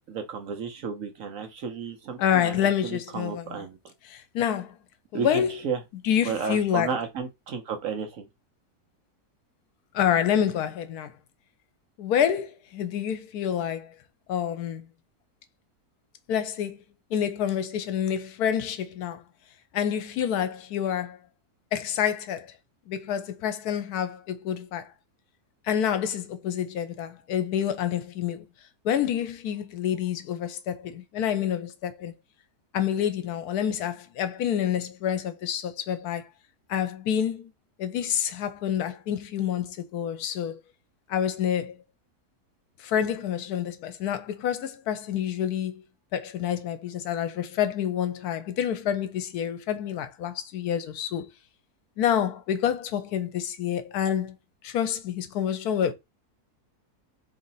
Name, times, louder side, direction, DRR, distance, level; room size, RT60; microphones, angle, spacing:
voice 1, 0.1-2.6 2.8-3.8 5.1-5.8 6.2-8.3, right 6 dB, 65° right, 1.1 m, -32 dB
voice 2, 2.2-3.7 4.0-4.7 5.1-5.6 6.0-6.9 9.9-11.1 12.0-13.9 14.3-14.9 16.3-16.8 17.1-19.2 19.7-21.2 21.7-22.5 22.9-24.9 25.6-28.5 28.8-32.1 32.7-36.3 36.7-37.5 37.8-40.6 41.1-41.8 42.8-45.8 46.1-51.3 52.0-54.3 54.6-55.9, left 9 dB, 80° left, 1.1 m, -28 dB
3.1 x 2.8 x 3.9 m
omnidirectional pair, 1.7 m